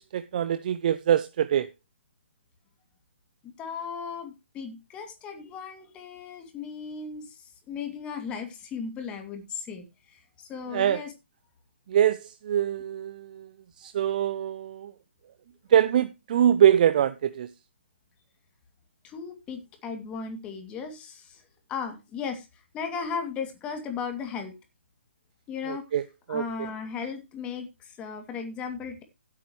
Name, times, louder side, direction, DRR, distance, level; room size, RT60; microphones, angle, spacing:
voice 1, 0.0-1.7 10.7-11.0 11.9-13.5 13.8-14.9 15.7-17.5 25.7-26.0 26.3-26.4, right 10 dB, 45° right, 0.7 m, -23 dB
voice 2, 3.4-11.1 19.0-21.4 21.7-22.5 22.7-24.5 25.5-25.8 26.3-29.0, left 6 dB, 15° left, 2.5 m, -36 dB
15.5 x 8.5 x 3.1 m
hypercardioid pair, 145°, 6 cm